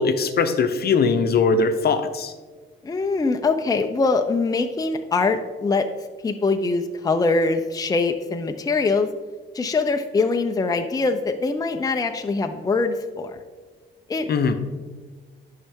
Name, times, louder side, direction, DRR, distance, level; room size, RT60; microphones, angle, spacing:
voice 1, 0.0-2.3 14.3-14.5, left 4 dB, 55° left, 8 dB, 0.8 m, -20 dB
voice 2, 2.8-5.9 6.2-9.1 9.5-13.4 14.1-14.3, left 3 dB, 20° left, 6 dB, 0.6 m, -23 dB
12.0 x 5.6 x 3.6 m, 1.4 s
cardioid pair, 90°, 20 cm